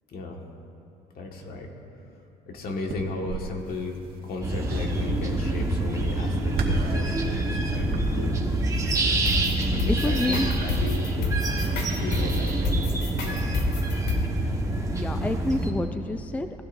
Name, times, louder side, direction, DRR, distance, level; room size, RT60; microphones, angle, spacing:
voice 1, 0.1-0.4 1.1-1.7 2.5-8.4 9.7-11.6 12.0-13.4, left 3 dB, 60° left, 1 dB, 1.8 m, -35 dB
sound 1, 2.9-13.3, right 3 dB, 65° right, 1.9 m, -37 dB
sound 2, 4.4-15.7, right 2 dB, 20° right, 1.5 m, -27 dB
sound 3, 9.3-14.2, left 3 dB, 85° left, 2.0 m, -28 dB
voice 2, 10.0-10.5 14.9-16.6, left 2 dB, 10° left, 8 dB, 0.4 m, -28 dB
19.5 x 15.5 x 2.7 m, 2.9 s
cardioid pair, 110°, 17 cm